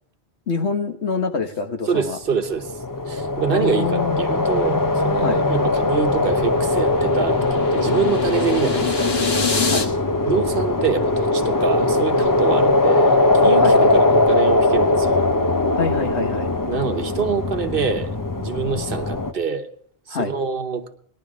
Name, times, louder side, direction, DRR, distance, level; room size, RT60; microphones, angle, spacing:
voice 1, 0.5-2.2 3.5-4.2 5.2-5.4 9.7-9.9 13.6-13.8 15.7-16.5 20.1-20.3, left 4 dB, 80° left, 4 dB, 1.7 m, -25 dB
voice 2, 1.9-2.7 3.1-9.1 10.3-15.2 16.7-19.7 20.1-20.9, right 5 dB, 55° right, 8 dB, 1.2 m, -25 dB
sound 1, 2.3-19.3, left 2 dB, 20° left, 0.6 m, -20 dB
sound 2, 5.6-9.9, left 5 dB, 60° left, 1.9 m, -27 dB
19.5 x 11.5 x 3.6 m, 0.63 s
omnidirectional pair, 1.1 m